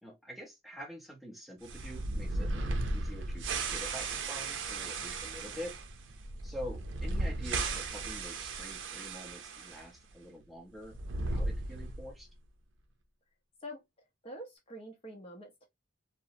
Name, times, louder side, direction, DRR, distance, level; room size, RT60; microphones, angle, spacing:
voice 1, 0.0-5.7 6.4-11.0 11.3-12.3, equal, ahead, 0.7 m, -46 dB
sound 1, 1.6-9.8 10.1-10.2 10.8-12.2, right 2 dB, 75° right, 0.5 m, -36 dB
voice 2, 14.2-15.7, equal, 30° left, 0.6 m, -45 dB
2.8 x 2.0 x 2.5 m
head